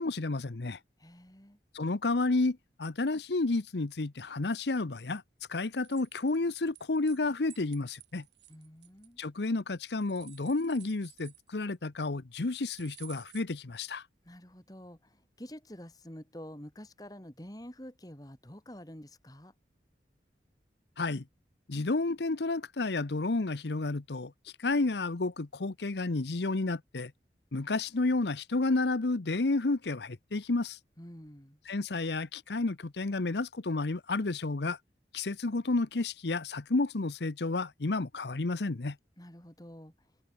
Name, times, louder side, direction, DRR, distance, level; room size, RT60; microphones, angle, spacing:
voice 1, 0.0-0.8 1.7-5.2 5.5-8.2 9.2-14.0 21.0-21.2 21.7-24.3 24.6-27.1 27.5-30.8 31.7-34.8 35.1-38.9, left 3 dB, 75° left, 0.9 m, -31 dB
voice 2, 1.0-1.6 8.5-9.2 14.2-19.5 31.0-31.6 39.2-39.9, equal, 20° left, 2.8 m, -48 dB
sound 1, 5.8-7.2 7.5-9.5 9.9-11.8 12.7-13.4, right 16 dB, 80° right, 6.8 m, -54 dB
head